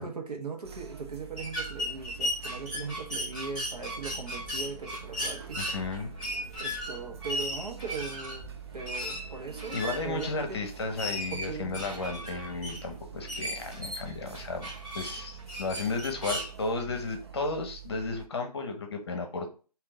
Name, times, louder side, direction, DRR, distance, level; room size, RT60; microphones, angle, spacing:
voice 1, 0.0-5.8 6.6-10.6 11.3-11.8, right 4 dB, 70° right, 2 dB, 1.2 m, -39 dB
sound 1, 0.6-18.3, right 10 dB, 40° right, 0.4 m, -46 dB
sound 2, 1.4-16.5, equal, ahead, 2.1 m, -37 dB
voice 2, 5.6-6.1 6.6-6.7 9.7-19.5, left 3 dB, 40° left, 5 dB, 0.9 m, -34 dB
3.7 x 2.8 x 3.8 m, 0.36 s
figure-of-eight pair, 150°, 21 cm